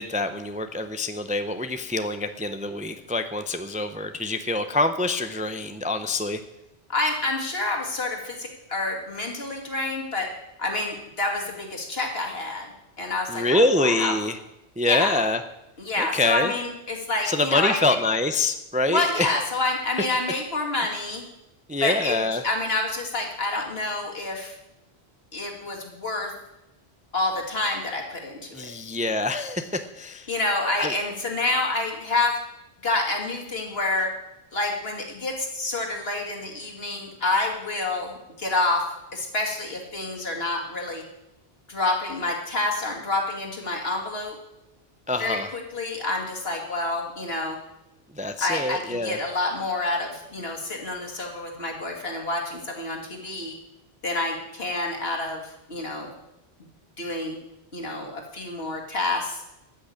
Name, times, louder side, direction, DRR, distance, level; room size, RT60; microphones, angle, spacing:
voice 1, 0.0-6.4 13.3-14.4 14.8-15.4 16.0-16.5 17.2-19.4 21.7-22.4 28.5-30.3 30.8-30.9 45.1-45.5 48.2-49.2, left 2 dB, 10° right, 8 dB, 0.5 m, -25 dB
voice 2, 6.9-10.3 10.6-12.7 13.0-14.2 14.8-15.2 15.8-17.8 18.9-21.2 21.8-22.2 22.4-24.6 25.3-26.3 27.1-28.7 30.3-32.4 32.8-34.1 34.5-41.0 41.7-44.3 45.2-47.6 48.4-53.6 54.0-56.1 57.0-57.4 57.7-59.4, left 2 dB, 65° left, 1 dB, 2.5 m, -28 dB
13.5 x 6.3 x 8.5 m, 0.91 s
omnidirectional pair, 1.1 m